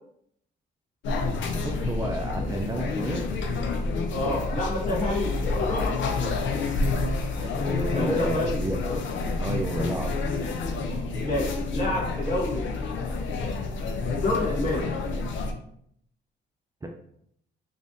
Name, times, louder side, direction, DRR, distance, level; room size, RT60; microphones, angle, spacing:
sound 1, 1.0-15.5, left 3 dB, 75° left, 0.5 m, -29 dB
voice 1, 1.6-3.2 7.7-8.8 9.4-10.1 16.8-16.9, right 2 dB, 15° right, 2 dB, 0.4 m, -31 dB
voice 2, 4.1-6.4 7.4-8.6 8.8-9.0 11.2-12.8 14.0-15.0, left 2 dB, 40° left, -2 dB, 1.3 m, -29 dB
3.2 x 2.6 x 3.7 m, 0.70 s
cardioid pair, 90°, 20 cm